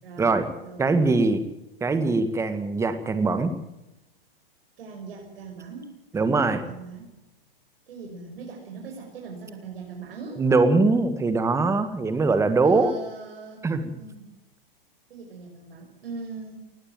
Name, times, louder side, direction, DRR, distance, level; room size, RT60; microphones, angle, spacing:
voice 1, 0.0-0.3 0.6-0.9 4.8-7.1 7.9-10.4 12.6-13.6 14.0-14.3 15.1-16.6, right 4 dB, 75° right, 0 dB, 6.4 m, -40 dB
voice 2, 0.8-1.5 1.8-3.6 6.1-6.7 10.4-12.9 13.6-13.9, right 3 dB, 10° right, 10 dB, 1.7 m, -22 dB
19.5 x 15.0 x 9.1 m, 0.95 s
hypercardioid pair, 145°, 29 cm